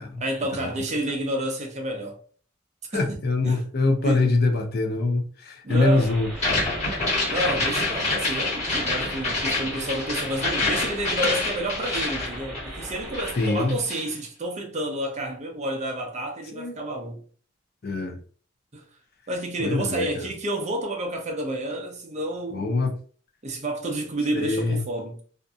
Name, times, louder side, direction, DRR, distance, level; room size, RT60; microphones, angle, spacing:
voice 1, 0.2-2.2 2.9-3.6 4.0-4.3 5.6-6.1 7.3-17.2 18.7-18.8 19.3-22.9 23.4-25.2, right 1 dB, 35° right, 0.6 m, -30 dB
voice 2, 2.9-6.3 13.4-13.8 16.5-16.7 17.8-18.2 19.6-20.3 22.5-22.9 24.3-24.8, left 3 dB, 50° left, 0.6 m, -24 dB
sound 1, 5.7-14.0, equal, ahead, 1.2 m, -39 dB
sound 2, 6.3-12.9 13.1-14.1, left 2 dB, 35° left, 1.4 m, -27 dB
2.6 x 2.5 x 2.3 m
head